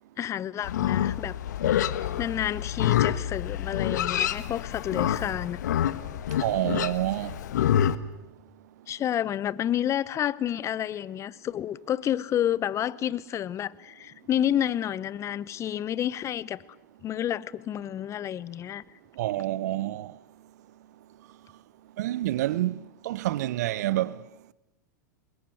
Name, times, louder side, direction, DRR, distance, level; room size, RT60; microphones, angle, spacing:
voice 1, 0.2-1.4 2.2-5.6 8.9-16.6 17.0-18.8, left 10 dB, 30° left, 1.0 m, -30 dB
Livestock farm animals working animals, 0.6-8.0, left 11 dB, 70° left, 1.4 m, -27 dB
voice 2, 6.4-7.4 19.2-20.1 22.0-22.8 23.0-24.2, right 15 dB, 60° right, 0.9 m, -28 dB
28.5 x 22.5 x 7.9 m
hypercardioid pair, 100°, 10 cm